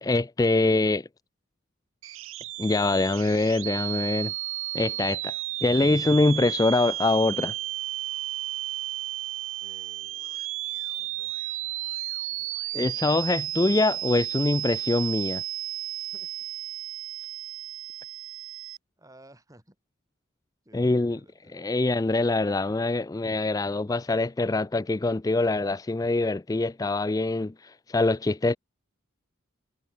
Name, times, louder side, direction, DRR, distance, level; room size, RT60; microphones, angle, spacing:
voice 1, 0.0-1.1 2.6-4.3 4.7-5.3 5.6-7.5 12.7-15.4 20.7-21.2 21.5-28.6, left 2 dB, 15° left, 0.3 m, -24 dB
sound 1, 2.0-18.8, right 15 dB, 75° right, 1.0 m, -33 dB
voice 2, 9.6-10.5 11.0-11.3 16.1-16.3 19.0-19.8 20.7-21.9, right 1 dB, 15° right, 3.7 m, -56 dB
head